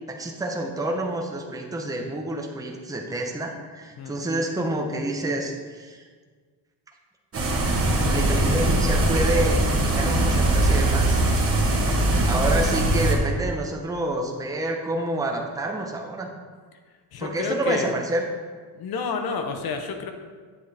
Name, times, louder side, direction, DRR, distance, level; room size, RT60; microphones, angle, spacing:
voice 1, 0.1-6.0 8.1-11.6 12.3-16.3 17.2-18.2, right 1 dB, 10° right, 1 dB, 0.8 m, -28 dB
sound 1, 7.3-13.2, right 1 dB, 30° right, 1.5 m, -21 dB
voice 2, 17.1-17.9 18.7-20.1, left 5 dB, 55° left, 6 dB, 1.0 m, -30 dB
8.4 x 7.2 x 3.5 m, 1.5 s
cardioid pair, 125°, 44 cm